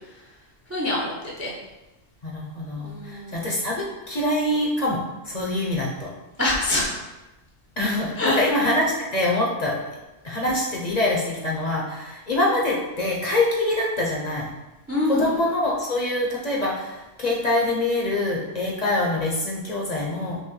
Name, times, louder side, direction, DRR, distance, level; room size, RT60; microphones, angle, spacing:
voice 1, 0.7-1.5 2.8-3.4 6.4-7.0 8.2-8.4 14.9-15.3, left 1 dB, 20° right, -4 dB, 0.4 m, -25 dB
voice 2, 2.2-6.1 7.8-9.8 10.2-14.5 15.1-20.4, left 1 dB, 45° left, -3 dB, 0.6 m, -25 dB
5.5 x 2.1 x 3.0 m, 1.0 s
omnidirectional pair, 1.2 m